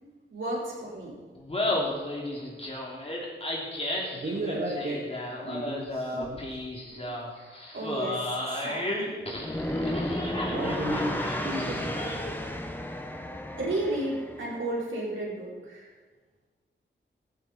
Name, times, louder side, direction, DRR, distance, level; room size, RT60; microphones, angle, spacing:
voice 1, 0.3-1.1 7.4-9.1 13.6-15.9, right 1 dB, 75° right, -5 dB, 4.7 m, -33 dB
Laughter, 1.3-12.4, left 1 dB, 30° left, 3.2 m, -33 dB
voice 2, 4.1-6.6 6.9-7.2 9.6-11.9, right 1 dB, 55° right, -3 dB, 2.1 m, -35 dB
sound 1, 9.4-14.5, left 1 dB, 10° left, 1.3 m, -33 dB
15.0 x 14.5 x 4.4 m, 1.4 s
wide cardioid pair, 95°, 20 cm